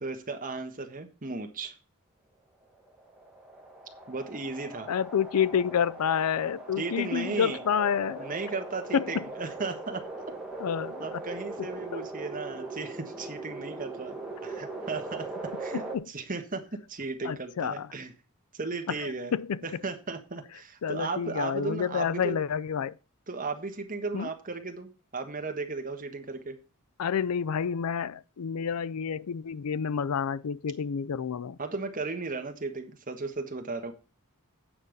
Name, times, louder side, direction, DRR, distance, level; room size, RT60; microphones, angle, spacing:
voice 1, 0.0-1.7 4.1-4.9 6.8-7.6 8.2-10.0 11.0-14.2 14.4-15.3 15.6-18.1 18.5-19.3 19.6-22.4 23.3-26.6 31.6-33.9, right 3 dB, 35° right, 1.4 m, -35 dB
sound 1, 2.7-16.0, right 2 dB, 5° right, 1.9 m, -40 dB
voice 2, 4.9-8.3 8.9-9.2 10.6-11.2 11.9-12.0 15.7-16.1 17.2-17.9 19.0-19.6 20.8-22.9 24.1-24.3 27.0-31.6, left 7 dB, 80° left, 0.4 m, -29 dB
8.7 x 5.5 x 6.5 m
head